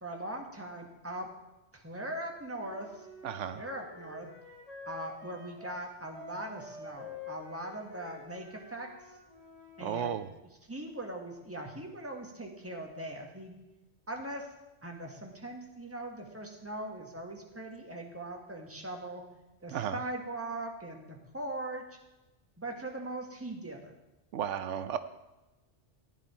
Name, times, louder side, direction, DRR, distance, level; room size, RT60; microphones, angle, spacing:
voice 1, 0.0-1.3 1.7-3.1 3.5-4.3 4.8-8.9 9.8-10.2 10.7-13.6 14.1-14.5 14.8-19.2 19.6-21.8 22.6-24.0, right 1 dB, 10° right, 1 dB, 1.7 m, -40 dB
Wind instrument woodwind instrument, 2.5-9.9, left 3 dB, 30° left, 2.5 m, -48 dB
voice 2, 3.2-3.6 9.8-10.3 19.7-20.0 24.3-25.0, right 9 dB, 85° right, 11 dB, 1.0 m, -33 dB
15.0 x 9.7 x 4.4 m, 1.0 s
omnidirectional pair, 1.2 m